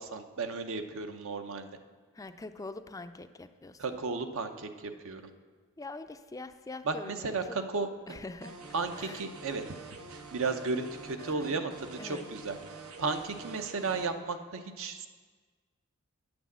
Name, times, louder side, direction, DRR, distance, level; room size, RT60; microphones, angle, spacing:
voice 1, 0.0-1.7 3.8-5.3 6.8-8.2 8.7-9.6 9.9-12.6 13.0-15.1, right 4 dB, 65° right, 8 dB, 0.7 m, -34 dB
voice 2, 2.2-3.8 5.8-7.3 8.1-8.6 9.0-9.2 11.2-11.6 12.0-12.3, left 3 dB, 15° left, 9 dB, 0.4 m, -43 dB
sound 1, 8.4-14.1, right 3 dB, 85° right, 0.9 m, -47 dB
9.4 x 6.1 x 7.3 m, 1.5 s
head